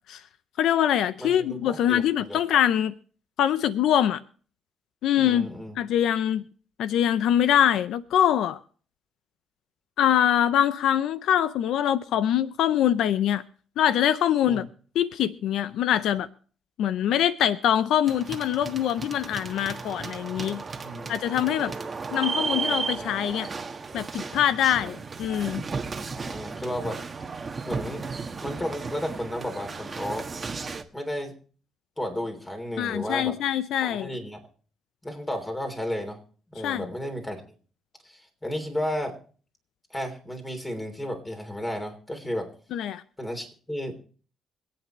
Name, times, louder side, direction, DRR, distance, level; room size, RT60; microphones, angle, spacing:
voice 1, 0.6-2.9 3.4-4.2 5.0-5.5 5.8-6.4 6.8-8.6 10.0-13.4 13.8-14.7 15.0-16.3 16.8-20.6 21.1-21.7 22.1-23.5 23.9-25.6 32.8-34.1 36.6-36.9 42.7-43.0, left 10 dB, 80° left, 0.5 m, -24 dB
voice 2, 1.2-2.4 5.2-5.8 14.5-14.6 20.8-21.1 24.8-24.9 26.1-27.0 27.6-28.0 28.4-30.3 30.9-31.3 32.0-33.3 33.8-34.4 35.0-36.2 36.5-37.4 38.0-39.1 39.9-42.5 43.2-44.0, equal, 15° left, 3.3 m, -33 dB
sound 1, 18.1-30.8, right 4 dB, 30° right, 1.3 m, -34 dB
26.0 x 8.6 x 3.1 m
cardioid pair, 90°, 0 cm